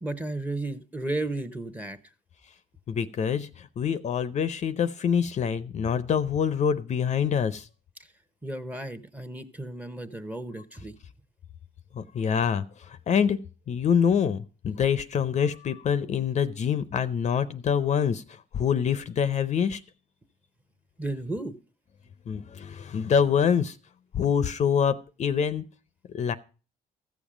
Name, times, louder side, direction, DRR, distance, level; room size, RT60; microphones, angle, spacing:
voice 1, 0.0-2.0 8.4-10.9 21.0-21.5, right 2 dB, 10° right, 10 dB, 0.9 m, -33 dB
voice 2, 2.9-7.7 11.9-13.4 13.7-19.8 22.3-23.8 24.1-25.6 26.1-26.3, left 7 dB, 40° left, 13 dB, 0.6 m, -25 dB
14.0 x 7.3 x 4.9 m, 0.36 s
cardioid pair, 110°, 17 cm